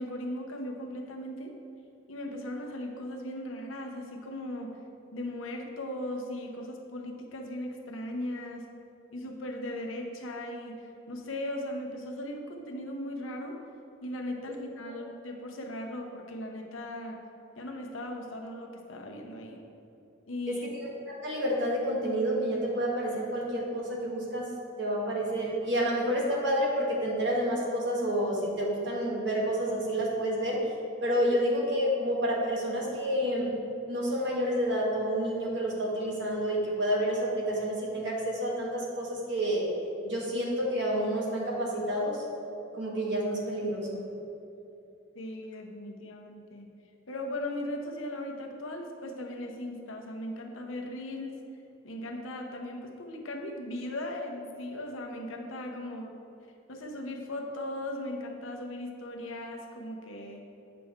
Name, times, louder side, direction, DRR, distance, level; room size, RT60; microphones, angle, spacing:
voice 1, 0.0-1.5 2.1-4.7 5.1-8.7 9.1-13.6 14.0-17.2 17.6-19.6 20.3-20.7 45.1-46.7 47.1-51.4 51.8-56.2 56.7-60.4, left 1 dB, 85° left, 2 dB, 0.9 m, -38 dB
voice 2, 20.5-24.5 24.8-30.6 31.0-33.5 33.9-39.7 40.0-42.2 42.7-44.0, equal, 60° right, -3 dB, 1.6 m, -29 dB
8.5 x 5.9 x 3.6 m, 2.7 s
head